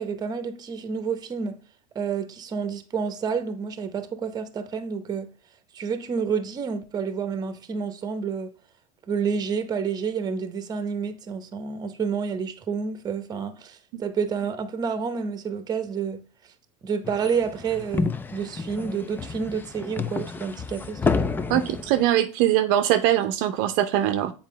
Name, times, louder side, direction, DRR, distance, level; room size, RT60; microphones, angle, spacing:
voice 1, 0.0-1.6 1.9-5.3 5.7-8.5 9.1-16.2 16.8-21.3, right 6 dB, 20° right, 0.9 m, -29 dB
sound 1, 17.0-22.1, left 4 dB, 10° left, 0.4 m, -30 dB
voice 2, 21.5-24.3, right 12 dB, 55° right, 0.6 m, -22 dB
7.5 x 4.4 x 3.2 m
supercardioid pair, 125°, 17 cm